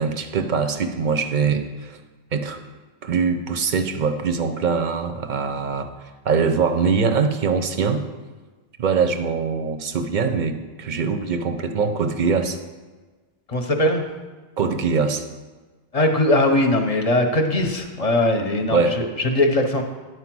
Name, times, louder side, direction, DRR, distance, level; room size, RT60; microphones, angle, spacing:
voice 1, 0.0-2.0 2.3-2.6 3.0-5.9 6.2-8.1 8.8-12.6 14.6-15.2 18.7-19.0, right 5 dB, 55° right, 7 dB, 0.7 m, -22 dB
voice 2, 13.5-14.1 15.9-19.8, left 1 dB, 40° left, 4 dB, 0.8 m, -20 dB
9.6 x 4.7 x 6.1 m, 1.3 s
omnidirectional pair, 1.0 m